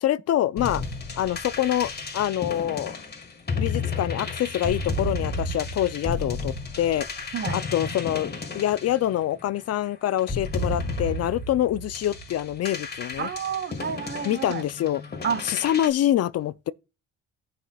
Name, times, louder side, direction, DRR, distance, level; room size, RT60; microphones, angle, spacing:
voice 1, 0.0-0.8 1.2-2.9 3.6-13.3 14.2-15.0 15.4-16.7, left 12 dB, 55° left, 0.4 m, -26 dB
sound 1, 0.6-9.6 10.2-15.9, left 3 dB, 30° left, 1.6 m, -32 dB
voice 2, 13.2-14.6 15.2-15.4, right 7 dB, 40° right, 0.9 m, -30 dB
16.5 x 5.9 x 2.3 m
cardioid pair, 90°, 30 cm